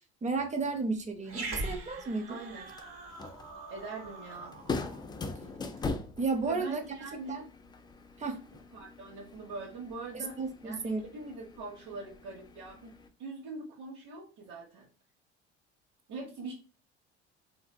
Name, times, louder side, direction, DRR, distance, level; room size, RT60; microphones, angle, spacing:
voice 1, 0.2-2.4 6.2-6.8 7.3-7.4 8.2-8.4 10.1-11.0, right 3 dB, 20° right, 7 dB, 0.6 m, -33 dB
Growling, 1.2-5.9, right 2 dB, 40° right, 1.3 m, -42 dB
voice 2, 2.3-2.7 3.7-4.6 6.5-7.4 8.3-8.4 8.7-12.9 13.2-14.9 16.1-16.5, right 3 dB, 60° right, -4 dB, 1.2 m, -43 dB
sound 1, 2.5-13.1, left 3 dB, 15° left, 0.3 m, -42 dB
3.3 x 2.6 x 2.3 m, 0.34 s
hypercardioid pair, 70°, 33 cm